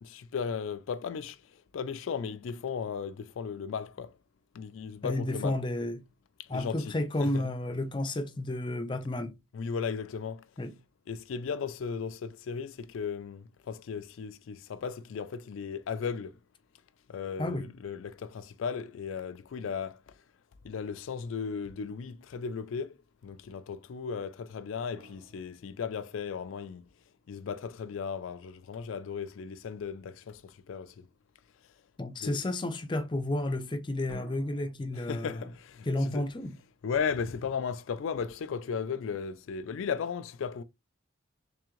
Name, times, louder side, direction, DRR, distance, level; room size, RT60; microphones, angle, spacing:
voice 1, 0.0-4.1 4.5-5.6 6.4-6.9 7.2-7.5 9.5-10.5 11.1-16.4 17.1-20.0 20.6-22.9 23.2-26.8 27.3-31.1 32.2-32.4 34.9-36.2 36.8-40.6, left 6 dB, 90° left, 0.4 m, -36 dB
voice 2, 5.0-6.0 6.5-9.3 10.6-10.7 17.4-17.7 32.0-35.4 35.9-36.6, left 1 dB, 25° left, 0.4 m, -31 dB
sound 1, 24.9-27.0 34.1-34.7, equal, 50° right, 2.0 m, -52 dB
3.5 x 3.3 x 3.0 m
head